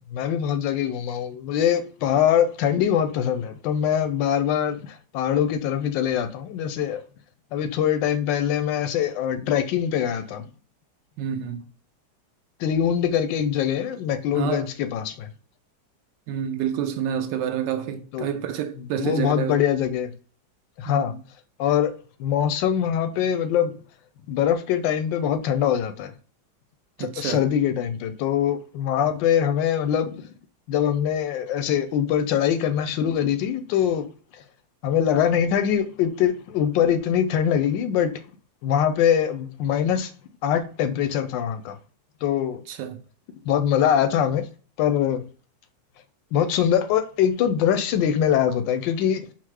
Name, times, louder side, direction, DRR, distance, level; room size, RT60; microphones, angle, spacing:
voice 1, 0.1-7.0 7.5-10.4 12.6-15.3 18.1-18.3 19.0-20.1 20.8-21.1 21.6-21.9 22.2-23.7 24.3-26.1 27.0-30.2 30.7-34.1 34.8-38.2 38.6-40.1 40.4-41.8 42.2-42.6 43.5-44.4 44.8-45.2 46.3-49.2, left 9 dB, 90° left, 1.3 m, -23 dB
voice 2, 11.2-11.6 14.3-14.7 16.3-19.6 20.8-21.2 27.0-27.5 42.7-43.0, right 9 dB, 80° right, 1.2 m, -28 dB
4.5 x 2.0 x 4.6 m
omnidirectional pair, 1.9 m